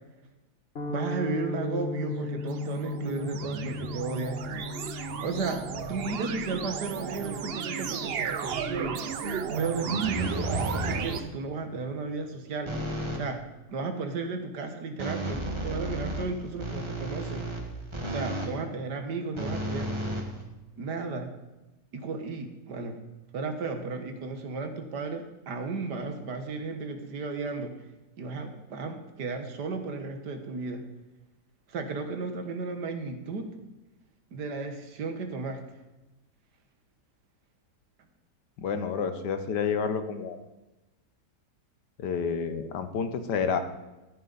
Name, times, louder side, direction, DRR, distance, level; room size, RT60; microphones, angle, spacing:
sound 1, 0.8-9.1, left 3 dB, 40° left, 1.5 m, -38 dB
voice 1, 0.9-4.4 5.2-5.6 5.9-9.0 9.6-12.7 13.2-13.4 13.7-17.5 18.1-19.9 20.8-21.3 21.9-23.0 23.3-27.7 28.2-30.8 31.7-33.5 34.3-35.6, right 4 dB, 75° right, 6 dB, 1.9 m, -34 dB
sound 2, 2.2-11.2, right 7 dB, 55° right, 0.7 m, -34 dB
sound 3, 10.0-11.3 12.7-13.3 15.0-18.6 19.4-20.8, right 1 dB, 15° right, 1.5 m, -33 dB
voice 2, 38.6-40.4 42.0-43.6, left 6 dB, 75° left, 9 dB, 1.6 m, -29 dB
13.0 x 10.5 x 4.1 m, 1.0 s
omnidirectional pair, 1.8 m